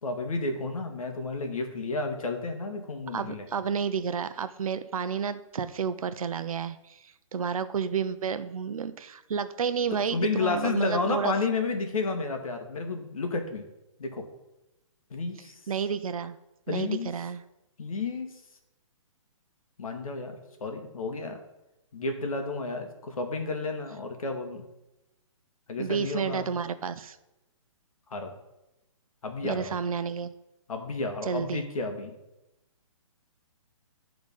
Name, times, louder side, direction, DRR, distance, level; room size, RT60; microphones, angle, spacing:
voice 1, 0.0-3.5 10.1-13.6 14.0-14.2 15.1-15.5 16.7-17.1 17.8-18.3 19.8-20.3 20.6-21.4 21.9-24.6 25.7-26.5 28.1-28.3 29.2-29.8 30.7-32.1, left 3 dB, 80° left, 5 dB, 1.7 m, -31 dB
voice 2, 3.1-7.0 7.3-11.3 15.7-16.4 16.7-17.4 25.8-27.2 29.4-30.3 31.3-31.6, right 6 dB, 85° right, 12 dB, 0.7 m, -31 dB
10.5 x 4.0 x 5.3 m, 0.95 s
hypercardioid pair, 170°, 18 cm